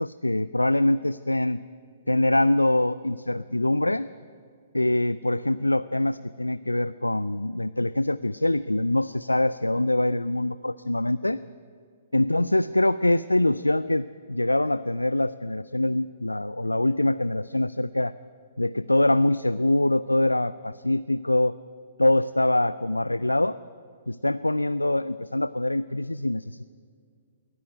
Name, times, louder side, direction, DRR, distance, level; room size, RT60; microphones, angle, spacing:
voice 1, 0.0-1.6 2.1-4.1 4.7-11.4 12.1-18.1 18.6-21.6 22.0-23.6 24.1-26.6, left 1 dB, 85° left, 16 dB, 0.4 m, -24 dB
22.0 x 14.0 x 9.0 m, 2.2 s
figure-of-eight pair, 120°, 0 cm